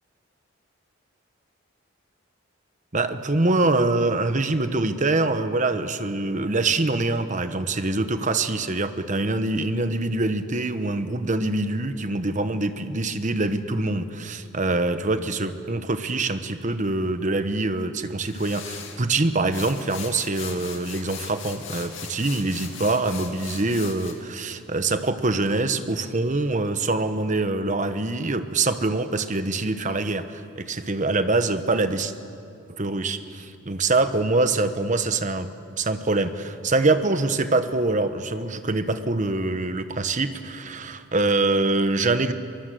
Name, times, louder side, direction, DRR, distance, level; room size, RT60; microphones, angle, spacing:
voice 1, 2.9-32.1 32.8-35.5 35.8-42.3, right 2 dB, 35° right, 10 dB, 1.0 m, -24 dB
sound 1, 18.2-19.0 19.5-24.1, left 7 dB, 65° left, 2.6 m, -39 dB
23.5 x 21.5 x 7.8 m, 2.6 s
head